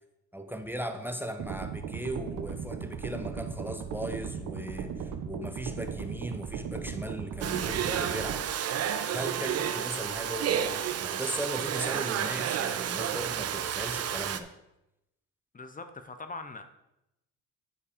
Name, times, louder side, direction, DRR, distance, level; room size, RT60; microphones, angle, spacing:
voice 1, 0.3-8.4 9.1-14.5, right 1 dB, 5° right, 7 dB, 0.7 m, -37 dB
sound 1, 1.4-8.4, right 7 dB, 85° right, 0.9 m, -37 dB
Domestic sounds home sounds, 7.4-14.4, right 9 dB, 55° right, 0.6 m, -31 dB
voice 2, 15.5-16.6, left 3 dB, 25° left, 8 dB, 0.7 m, -41 dB
9.9 x 4.7 x 5.0 m, 0.89 s
cardioid pair, 90°, 30 cm